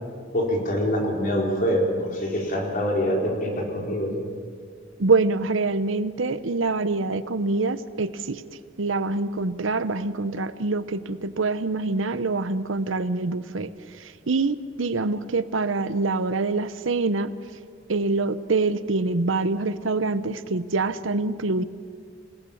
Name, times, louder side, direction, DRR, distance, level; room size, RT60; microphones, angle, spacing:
voice 1, 0.3-4.2, equal, 45° left, 0 dB, 4.1 m, -25 dB
voice 2, 5.0-8.4 8.8-13.7 14.0-17.3 17.9-21.6, right 3 dB, 85° right, 14 dB, 0.8 m, -25 dB
27.5 x 17.5 x 7.1 m, 2.1 s
head